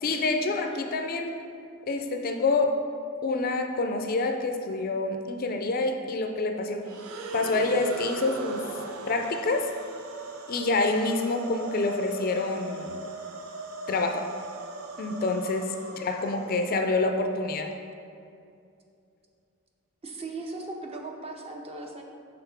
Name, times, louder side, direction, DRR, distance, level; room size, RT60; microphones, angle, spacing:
voice 1, 0.0-1.3 1.9-2.8 3.2-6.9 7.3-8.7 9.1-9.7 10.5-13.0 13.9-14.3 15.0-17.7, left 3 dB, 40° left, 5 dB, 0.4 m, -27 dB
sound 1, 6.8-17.1, right 3 dB, 75° right, 0.6 m, -39 dB
voice 2, 20.0-22.0, right 2 dB, 25° right, 2 dB, 0.5 m, -38 dB
5.7 x 3.6 x 5.8 m, 2.5 s
head